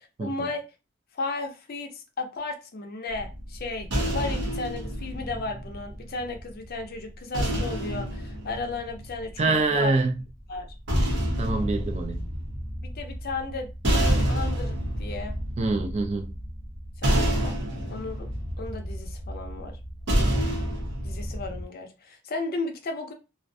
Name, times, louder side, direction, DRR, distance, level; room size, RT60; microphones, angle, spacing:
voice 1, 0.2-0.7 1.1-10.0 10.5-10.7 12.8-15.3 17.0-17.5 17.9-18.3 18.6-19.8 20.1-20.5 21.0-23.1, left 3 dB, 45° left, 0.5 m, -34 dB
sound 1, 3.1-6.4 7.3-9.6 10.6-21.6, equal, 60° right, 0.7 m, -28 dB
voice 2, 9.4-10.1 11.4-12.3 15.6-16.3, right 3 dB, 30° right, 0.3 m, -25 dB
2.4 x 2.1 x 2.6 m
head